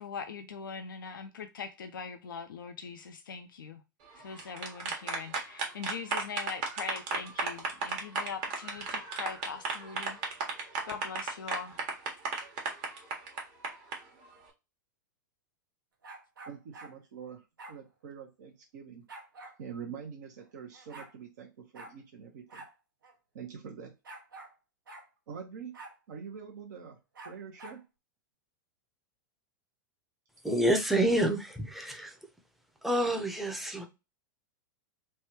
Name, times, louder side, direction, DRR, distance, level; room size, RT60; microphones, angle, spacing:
voice 1, 0.0-3.8 4.1-10.2 10.9-11.8, left 6 dB, 80° left, 0.4 m, -41 dB
sound 1, 4.2-14.0, right 4 dB, 45° right, 1.1 m, -34 dB
sound 2, 16.0-16.9 17.6-17.8 19.1-19.6 20.4-20.5 20.7-21.1 21.7-21.9 22.5-22.7 23.0-23.1 24.0-24.5 24.9-25.1 25.7-26.0 27.1-27.8, right 2 dB, 80° right, 1.0 m, -47 dB
voice 2, 16.5-19.1 19.6-22.6 23.3-23.9 25.3-25.7 26.1-27.0 27.2-27.8, right 7 dB, 60° right, 0.7 m, -45 dB
voice 3, 30.4-32.1 32.8-33.9, right 1 dB, ahead, 0.6 m, -28 dB
3.3 x 2.2 x 2.9 m
hypercardioid pair, 100°, 11 cm